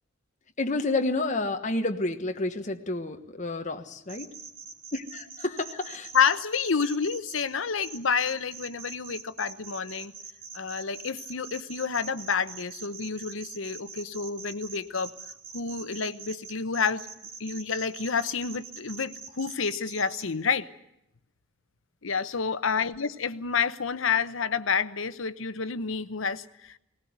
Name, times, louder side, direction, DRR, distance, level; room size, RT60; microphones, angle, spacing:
voice 1, 0.6-4.3 5.1-6.1, left 2 dB, 40° left, 5 dB, 1.3 m, -30 dB
sound 1, 4.1-7.4 7.8-20.2, right 5 dB, 85° right, 3.8 m, -43 dB
voice 2, 6.1-10.1 10.5-15.1 15.5-17.1 17.4-20.7 22.0-26.8, left 6 dB, 90° left, 14 dB, 0.9 m, -29 dB
19.5 x 18.5 x 9.4 m, 0.79 s
head